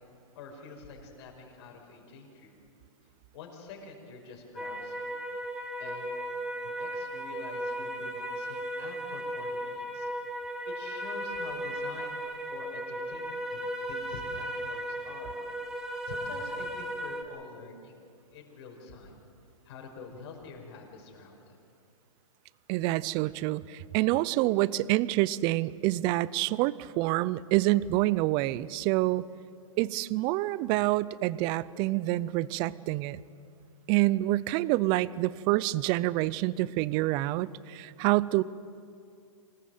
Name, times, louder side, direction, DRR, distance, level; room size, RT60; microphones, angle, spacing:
voice 1, 0.3-2.5 3.3-5.0 5.8-6.2 6.6-10.1 10.4-12.2 12.5-15.4 15.7-17.9 18.3-19.2 19.6-21.6, left 4 dB, 50° left, 1 dB, 5.4 m, -47 dB
Egan Plaing Flute - edited, 4.6-17.2, right 1 dB, 5° right, 1.7 m, -36 dB
voice 2, 22.7-29.2 29.8-33.2 33.9-38.4, right 18 dB, 25° right, 20 dB, 0.5 m, -27 dB
25.0 x 19.5 x 7.8 m, 2.4 s
hypercardioid pair, 145°, 18 cm